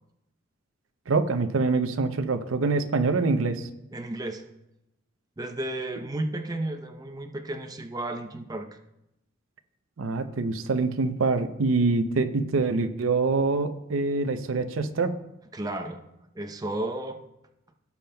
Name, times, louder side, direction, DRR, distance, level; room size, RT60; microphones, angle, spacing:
voice 1, 1.1-3.7 10.0-15.2, right 3 dB, 85° right, 8 dB, 0.6 m, -25 dB
voice 2, 3.9-4.4 5.4-8.7 15.5-16.0 16.3-17.2, right 1 dB, 20° right, 5 dB, 0.7 m, -33 dB
17.0 x 7.1 x 2.2 m, 0.88 s
head